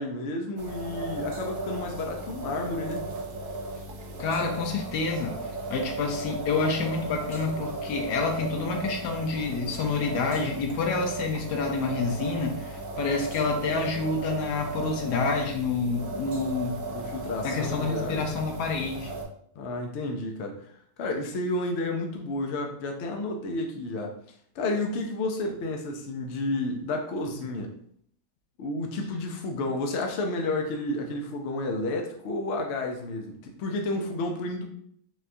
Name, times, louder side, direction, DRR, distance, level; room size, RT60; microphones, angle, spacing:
voice 1, 0.0-3.1 16.9-18.3 19.6-20.6 21.0-24.1 24.6-27.7 28.6-34.6, left 2 dB, 65° left, 3 dB, 0.7 m, -31 dB
sound 1, 0.6-19.2, right 2 dB, 75° right, 1.1 m, -36 dB
voice 2, 4.2-5.4 5.7-16.8 17.4-19.1, left 4 dB, 90° left, 3 dB, 1.2 m, -28 dB
3.9 x 2.3 x 2.6 m, 0.65 s
omnidirectional pair, 1.7 m